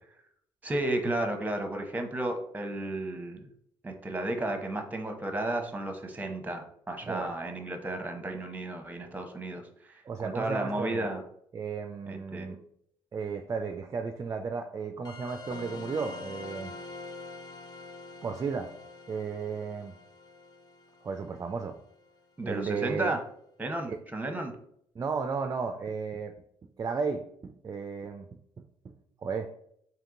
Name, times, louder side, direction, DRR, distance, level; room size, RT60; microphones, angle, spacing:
voice 1, 0.6-3.4 3.8-11.2 12.1-12.6 22.4-23.2 23.6-24.5, right 1 dB, 15° right, 5 dB, 0.8 m, -33 dB
voice 2, 7.0-7.3 10.1-11.1 11.5-12.6 13.1-16.7 18.2-18.7 19.1-19.9 21.0-21.8 22.4-23.1 23.9-24.0 25.0-26.3 26.8-28.3 28.6-28.7 29.2-29.5, right 5 dB, 30° right, 6 dB, 0.4 m, -34 dB
sound 1, 15.0-22.1, left 3 dB, 40° left, 0.4 m, -45 dB
3.6 x 2.9 x 3.7 m, 0.69 s
supercardioid pair, 75°, 10 cm